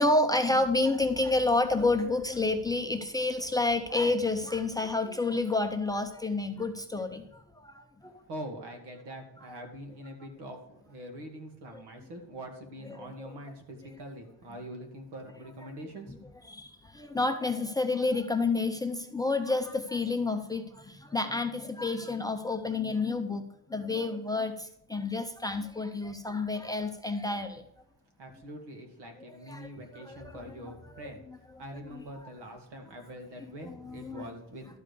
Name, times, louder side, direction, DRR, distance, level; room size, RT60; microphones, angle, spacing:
voice 1, 0.0-8.2 11.7-11.8 12.8-13.3 16.1-16.2 16.5-23.4 23.7-27.6 29.2-31.4 31.9-32.0 33.7-34.3, left 3 dB, 10° left, 5 dB, 0.4 m, -30 dB
voice 2, 8.3-16.2 28.2-31.2 31.6-34.7, equal, 85° right, 4 dB, 2.3 m, -44 dB
12.0 x 5.0 x 6.7 m, 0.79 s
cardioid pair, 170°, 40 cm